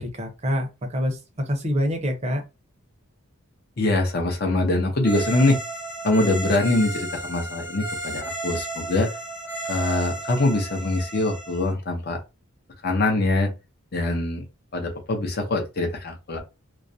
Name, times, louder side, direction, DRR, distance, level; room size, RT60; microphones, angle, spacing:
voice 1, 0.0-2.4, equal, 30° right, 0.6 m, -26 dB
voice 2, 3.8-5.6 6.0-9.1 9.7-12.2 12.8-13.5 13.9-14.4 14.7-16.4, left 2 dB, 45° left, 0.6 m, -23 dB
sound 1, 5.0-11.7, right 2 dB, 5° left, 0.7 m, -33 dB
2.4 x 2.0 x 2.6 m
head